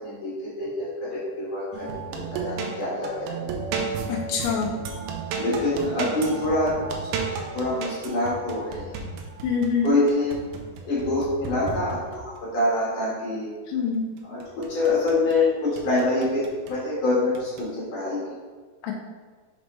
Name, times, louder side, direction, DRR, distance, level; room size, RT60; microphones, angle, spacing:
voice 1, 0.0-3.5 5.4-6.8 7.5-8.8 9.8-10.3 10.9-13.5 14.3-16.4 16.7-18.4, left 2 dB, 55° left, -8 dB, 2.8 m, -25 dB
sound 1, 1.7-12.4 14.2-15.4 15.8-16.8 17.3-17.7, right 4 dB, 80° right, 2.3 m, -34 dB
voice 2, 4.1-4.7 9.4-9.9 13.7-14.1 18.8-18.9, left 5 dB, 85° left, -1 dB, 1.6 m, -25 dB
6.6 x 5.4 x 3.2 m, 1.5 s
omnidirectional pair, 4.8 m